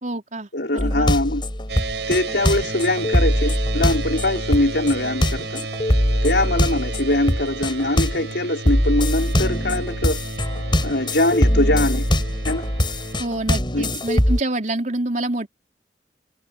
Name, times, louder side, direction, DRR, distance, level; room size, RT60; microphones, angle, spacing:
voice 1, 0.0-1.1 13.2-15.5, right 2 dB, 45° right, 4.1 m, -27 dB
voice 2, 0.5-1.4 2.1-5.7 6.2-10.2 10.8-12.1 12.4-12.7 13.7-13.9, left 1 dB, 70° left, 5.0 m, -22 dB
sound 1, 0.8-8.3 8.6-14.4, equal, 25° left, 7.0 m, -22 dB
sound 2, 1.7-13.2, right 3 dB, 85° right, 6.1 m, -32 dB
head